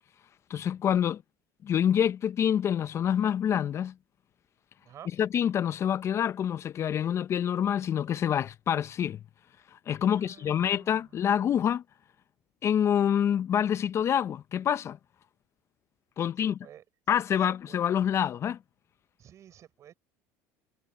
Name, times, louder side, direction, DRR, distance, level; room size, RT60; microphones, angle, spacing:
voice 1, 0.5-1.2 1.6-3.9 5.2-9.2 9.7-11.8 12.6-15.0 16.2-16.6 17.1-18.6, left 9 dB, 35° left, 0.5 m, -26 dB
voice 2, 10.1-11.0 16.6-16.8 17.7-17.8 19.2-19.9, right 10 dB, 45° right, 5.2 m, -51 dB
supercardioid pair, 110°, 8 cm